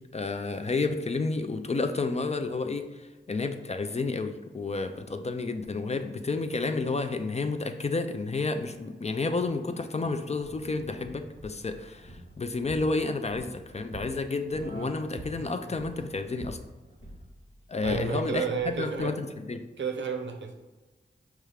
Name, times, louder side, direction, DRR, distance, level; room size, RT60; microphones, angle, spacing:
voice 1, 0.1-2.9 3.3-16.6 17.7-18.4 18.8-19.7, left 3 dB, 35° left, 7 dB, 0.4 m, -30 dB
Laughter, 8.7-12.9 14.5-17.5 17.8-17.9, right 1 dB, 65° left, 1.1 m, -48 dB
sound 1, 10.4-19.1, right 1 dB, 90° left, 1.0 m, -47 dB
voice 2, 17.8-19.2 19.8-20.5, right 6 dB, 70° right, 3 dB, 0.6 m, -31 dB
5.4 x 2.4 x 3.2 m, 1.2 s
cardioid pair, 45°, 20 cm